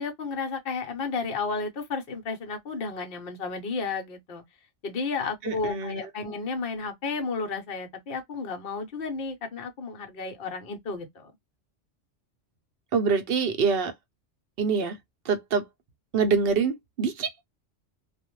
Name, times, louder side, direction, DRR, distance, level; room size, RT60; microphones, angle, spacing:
voice 1, 0.0-4.4 4.8-11.3, left 4 dB, 55° left, 0.9 m, -32 dB
voice 2, 5.4-6.1 12.9-13.9 14.6-15.0 15.2-15.6 16.1-17.4, right 5 dB, 60° right, 0.8 m, -25 dB
2.4 x 2.1 x 2.9 m
omnidirectional pair, 1.2 m